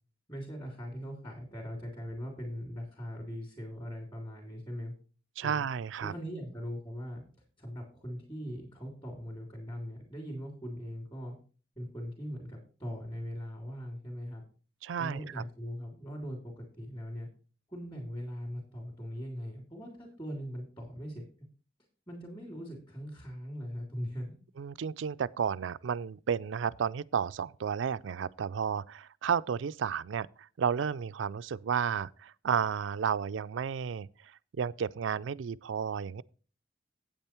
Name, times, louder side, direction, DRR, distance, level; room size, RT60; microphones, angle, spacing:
voice 1, 0.3-5.0 5.4-5.6 6.0-7.2 7.6-11.3 11.8-14.4 15.0-17.3 17.7-21.2 22.1-24.4, equal, 25° left, 2.9 m, -40 dB
voice 2, 5.4-6.1 14.8-15.4 24.6-30.3 30.6-34.1 34.6-36.2, right 7 dB, 90° right, 0.4 m, -32 dB
8.8 x 8.6 x 4.4 m
head